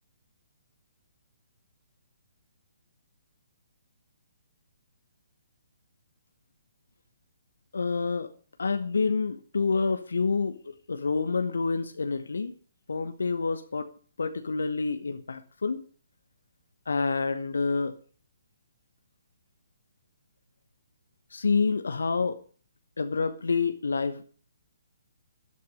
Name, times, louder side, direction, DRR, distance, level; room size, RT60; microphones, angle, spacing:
voice 1, 7.7-8.3 8.6-12.6 12.9-13.9 14.2-15.8 16.9-17.9 21.3-22.4 23.0-24.2, left 4 dB, 65° left, 10 dB, 1.2 m, -28 dB
13.5 x 11.5 x 5.1 m, 0.42 s
figure-of-eight pair, 130°, 0 cm